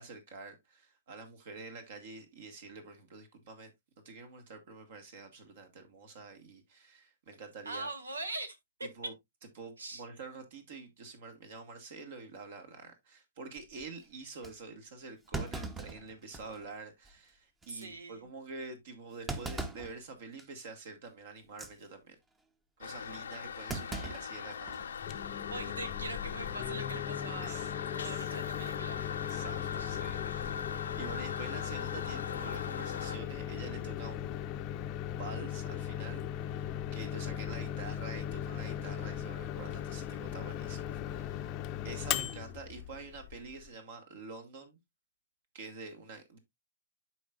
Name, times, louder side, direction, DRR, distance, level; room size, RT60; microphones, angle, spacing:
voice 1, 0.0-3.7 4.0-7.9 8.8-9.1 9.6-22.2 22.8-25.4 25.8-25.9 27.4-27.7 28.0-28.3 29.2-34.5 34.7-34.9 35.2-44.8 45.5-46.4, right 4 dB, 55° right, 1.8 m, -47 dB
voice 2, 7.7-8.9 9.8-10.0 17.7-18.3 25.4-29.4 29.7-29.9, right 2 dB, 85° right, 2.0 m, -42 dB
Thump thud, 13.6-13.8 14.4-14.5 15.3-16.7 17.0-17.1 17.6-17.8 19.3-19.9 20.4-20.6 21.4-21.7 23.7-24.9 25.2-25.3 26.4-26.8, right 3 dB, 10° right, 0.9 m, -40 dB
Toilet flush, 22.8-33.2, left 7 dB, 70° left, 0.7 m, -40 dB
Microwave oven, 25.0-43.7, left 10 dB, 35° left, 0.7 m, -38 dB
12.0 x 4.7 x 2.5 m
figure-of-eight pair, 120°, 0 cm